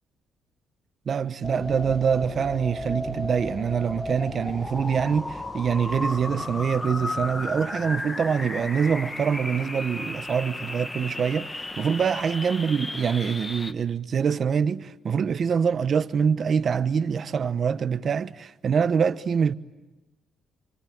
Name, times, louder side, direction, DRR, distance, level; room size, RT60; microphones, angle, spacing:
voice 1, 1.1-11.5 11.8-19.5, right 6 dB, 50° right, 1.0 m, -25 dB
sound 1, 1.4-13.7, left 1 dB, 20° left, 1.2 m, -34 dB
27.5 x 25.0 x 8.7 m
cardioid pair, 90°, 0 cm